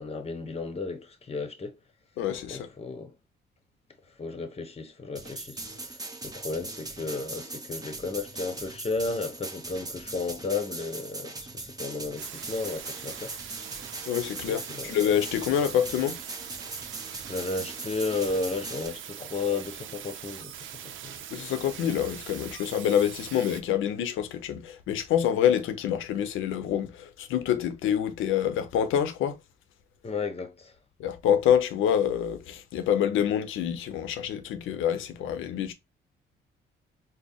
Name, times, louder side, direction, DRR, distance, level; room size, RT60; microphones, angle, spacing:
voice 1, 0.0-1.8 2.5-3.1 4.2-6.0 6.2-13.3 14.4-14.9 17.3-21.1 30.0-30.7, left 3 dB, 30° left, 1.0 m, -33 dB
voice 2, 2.2-2.7 14.1-16.2 21.3-29.4 31.0-35.7, left 9 dB, 85° left, 0.7 m, -26 dB
sound 1, 5.2-18.9, right 2 dB, 20° right, 1.0 m, -40 dB
sound 2, 12.2-23.6, right 10 dB, 75° right, 0.5 m, -42 dB
4.1 x 2.1 x 3.5 m
cardioid pair, 90°, 20 cm